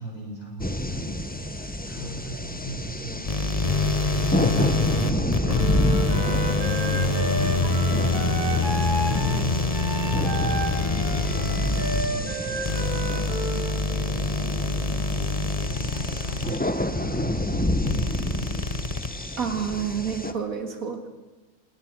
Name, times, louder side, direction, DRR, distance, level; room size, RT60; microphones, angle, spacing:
voice 1, 0.0-18.6, right 1 dB, 60° left, -2 dB, 8.2 m, -39 dB
sound 1, 0.6-20.3, left 1 dB, 5° left, 1.0 m, -29 dB
sound 2, 3.3-16.7 17.9-19.4, left 3 dB, 25° left, 1.2 m, -26 dB
Wind instrument woodwind instrument, 5.5-13.9, right 2 dB, 30° right, 5.1 m, -32 dB
voice 2, 19.4-21.1, right 7 dB, 65° right, 5 dB, 2.4 m, -29 dB
26.5 x 20.5 x 6.3 m, 1.2 s
omnidirectional pair, 1.6 m